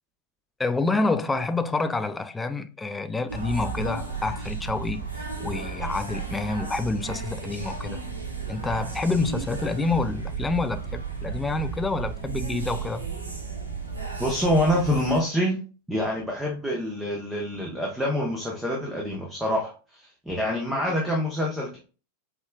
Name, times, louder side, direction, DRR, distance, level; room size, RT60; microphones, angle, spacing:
voice 1, 0.6-5.0 5.4-8.0 8.5-13.1 20.7-20.8, left 3 dB, 10° left, 0.3 m, -28 dB
sound 1, 3.3-15.2, right 5 dB, 80° right, 0.9 m, -34 dB
voice 2, 14.2-15.6 15.9-21.8, equal, 5° right, 0.9 m, -26 dB
5.3 x 3.4 x 2.3 m
figure-of-eight pair, 90°, 0 cm